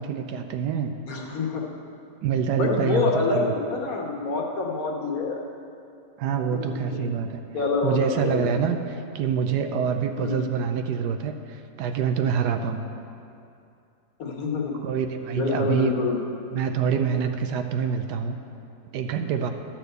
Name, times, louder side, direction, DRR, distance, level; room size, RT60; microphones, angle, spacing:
voice 1, 0.0-0.9 2.2-3.5 6.2-7.4 7.8-12.9 14.8-16.0 16.5-18.3 18.9-19.5, right 7 dB, 80° right, 7 dB, 1.2 m, -26 dB
voice 2, 1.1-1.6 2.5-5.4 6.7-7.1 7.5-8.5 10.2-10.5 14.2-14.8 15.3-16.2, left 4 dB, 60° left, -1 dB, 1.5 m, -26 dB
12.0 x 4.5 x 8.0 m, 2.6 s
omnidirectional pair, 1.8 m